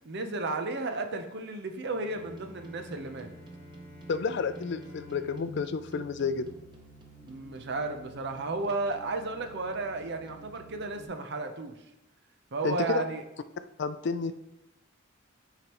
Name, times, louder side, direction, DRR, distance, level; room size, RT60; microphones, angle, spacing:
voice 1, 0.0-3.3 7.2-11.7 12.5-13.2, right 3 dB, 60° right, 6 dB, 0.7 m, -33 dB
Bowed string instrument, 1.8-7.2, right 1 dB, 30° left, 1.1 m, -53 dB
sound 1, 2.1-11.0, right 1 dB, 25° right, 0.7 m, -50 dB
voice 2, 4.1-6.5 12.6-13.0 13.8-14.3, left 5 dB, 60° left, 12 dB, 0.4 m, -30 dB
9.3 x 5.0 x 3.0 m, 0.91 s
head